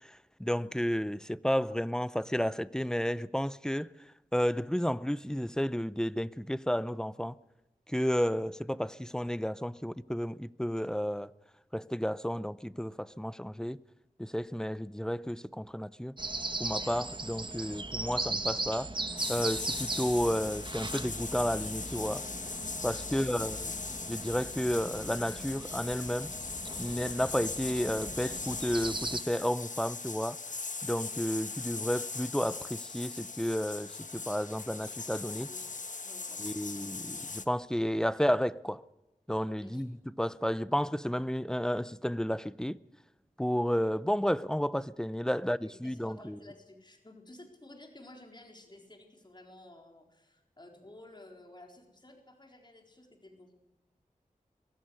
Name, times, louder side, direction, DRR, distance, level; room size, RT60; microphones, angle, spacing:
voice 1, 0.4-3.9 4.3-7.3 7.9-11.3 11.7-13.8 14.2-16.1 16.6-18.9 19.3-22.2 22.8-23.7 24.1-26.3 26.8-30.4 30.8-35.5 36.4-38.8 39.3-42.8 43.4-46.4, equal, 5° left, 0.7 m, -32 dB
sound 1, 16.2-29.2, right 2 dB, 35° right, 1.6 m, -39 dB
sound 2, 19.2-37.4, left 4 dB, 65° left, 1.3 m, -40 dB
voice 2, 23.0-23.4 34.7-34.8 35.3-36.5 36.7-36.9 39.5-39.8 45.3-53.5, left 1 dB, 30° left, 4.3 m, -54 dB
23.0 x 15.0 x 9.7 m
wide cardioid pair, 55°, 14 cm